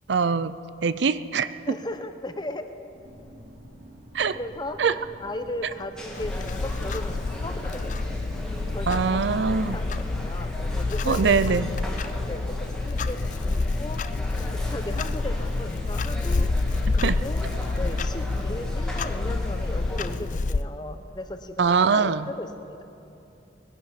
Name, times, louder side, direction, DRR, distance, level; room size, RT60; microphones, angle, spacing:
voice 1, 0.1-0.5 0.8-1.5 4.1-4.4 4.8-4.9 8.9-9.8 11.1-11.7 17.0-17.2 21.6-22.3, right 5 dB, 65° right, 14 dB, 0.5 m, -22 dB
voice 2, 1.7-2.7 4.3-8.2 8.7-11.5 12.0-12.4 12.8-13.5 13.8-14.0 14.5-16.5 16.9-17.5 17.8-22.8, left 1 dB, 20° left, 9 dB, 0.7 m, -36 dB
sound 1, 2.9-11.5, equal, 85° right, 3.8 m, -47 dB
sound 2, 6.0-20.2, equal, 5° left, 1.7 m, -38 dB
Clock, 6.2-20.6, left 3 dB, 40° left, 0.4 m, -28 dB
20.5 x 11.0 x 5.8 m, 2.7 s
head